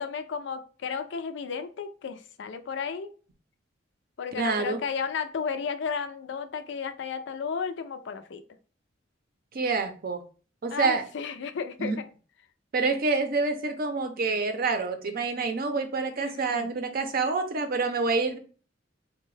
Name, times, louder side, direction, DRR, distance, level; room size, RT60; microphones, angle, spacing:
voice 1, 0.0-3.1 4.2-8.4 10.7-12.0 16.2-16.7, left 6 dB, 70° left, 8 dB, 0.4 m, -33 dB
voice 2, 4.4-4.8 9.5-10.2 10.6-11.0 11.8-12.0 12.7-18.4, right 4 dB, 50° right, 7 dB, 0.6 m, -27 dB
3.6 x 2.2 x 3.2 m, 0.38 s
head